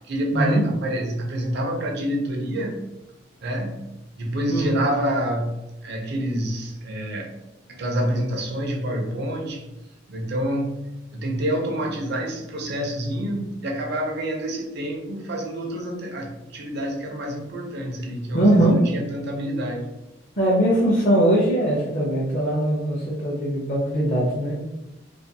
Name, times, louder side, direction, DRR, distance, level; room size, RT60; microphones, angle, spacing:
voice 1, 0.1-2.8 3.4-3.9 4.2-7.3 7.8-9.6 10.1-19.9, right 1 dB, 55° right, 1 dB, 0.5 m, -27 dB
voice 2, 18.3-18.7 20.4-24.6, right 1 dB, 40° left, -6 dB, 0.5 m, -20 dB
2.4 x 2.2 x 2.6 m, 0.94 s
head